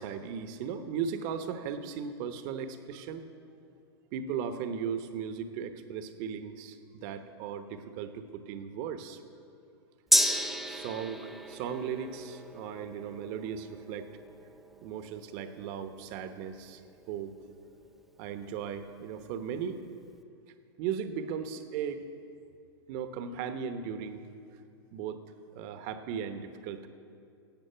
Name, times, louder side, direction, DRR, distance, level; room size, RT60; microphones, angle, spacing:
voice 1, 0.0-3.3 4.1-9.2 10.6-14.1 14.8-16.8 17.1-17.3 18.2-19.8 20.8-22.0 22.9-24.3 24.9-25.2 25.5-26.9, right 7 dB, 45° right, 9 dB, 1.0 m, -37 dB
Gong, 10.1-17.9 18.2-18.3, equal, ahead, 0.6 m, -34 dB
16.5 x 8.7 x 5.7 m, 2.5 s
hypercardioid pair, 115°, 14 cm